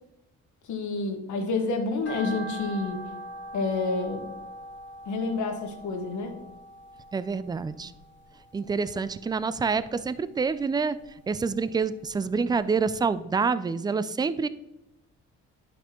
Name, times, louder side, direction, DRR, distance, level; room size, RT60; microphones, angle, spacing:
voice 1, 0.7-3.0 3.5-4.3 5.0-6.3, left 3 dB, 75° left, 4 dB, 1.5 m, -29 dB
sound 1, 2.0-8.4 8.7-9.9 10.2-11.6 12.0-12.1 12.6-12.7 12.9-13.0, right 1 dB, 35° left, 1.9 m, -42 dB
voice 2, 7.1-7.9 8.5-11.0 11.3-14.5, right 5 dB, 15° right, 15 dB, 0.3 m, -27 dB
11.0 x 5.4 x 3.0 m, 0.91 s
cardioid pair, 90°, 30 cm